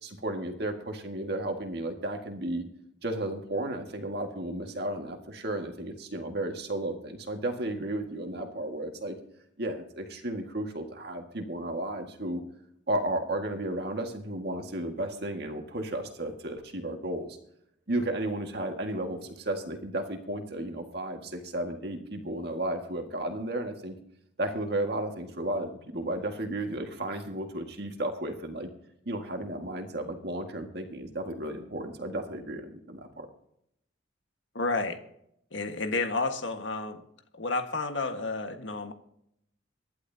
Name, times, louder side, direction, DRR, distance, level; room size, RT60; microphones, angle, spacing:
voice 1, 0.0-2.6 3.0-9.2 9.6-12.4 12.9-17.4 17.9-24.0 24.4-28.7 29.1-33.3, right 1 dB, 55° right, 4 dB, 1.9 m, -33 dB
voice 2, 34.5-35.0 35.5-37.0 37.4-38.9, left 3 dB, 75° left, 6 dB, 1.6 m, -31 dB
25.0 x 11.5 x 2.8 m, 0.75 s
head